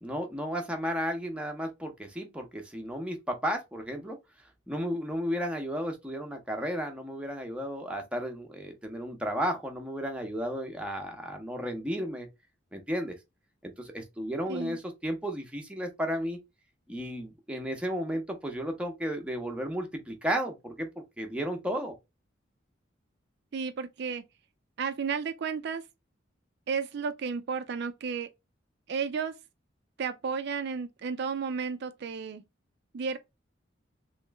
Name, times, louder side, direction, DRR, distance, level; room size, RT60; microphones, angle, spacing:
voice 1, 0.0-4.2 4.7-12.3 12.7-13.1 13.6-16.4 16.9-20.9 21.2-21.9, equal, 5° right, 0.7 m, -33 dB
voice 2, 23.5-24.2 24.8-25.8 26.7-28.3 28.9-29.4 30.0-32.4 32.9-33.2, right 5 dB, 60° right, 0.4 m, -33 dB
3.1 x 2.9 x 3.3 m
head